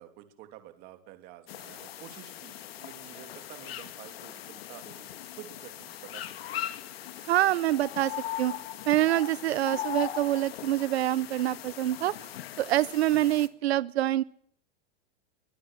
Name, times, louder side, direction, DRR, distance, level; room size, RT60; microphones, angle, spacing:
voice 1, 0.0-5.1 5.4-6.7, right 12 dB, 30° right, 8 dB, 2.9 m, -50 dB
sound 1, 1.5-13.5, left 12 dB, 70° left, 2.1 m, -40 dB
voice 2, 7.3-8.5 8.9-12.1 12.6-14.2, right 14 dB, 85° right, 18 dB, 0.9 m, -26 dB
23.5 x 19.0 x 7.4 m, 0.64 s
supercardioid pair, 175°, 31 cm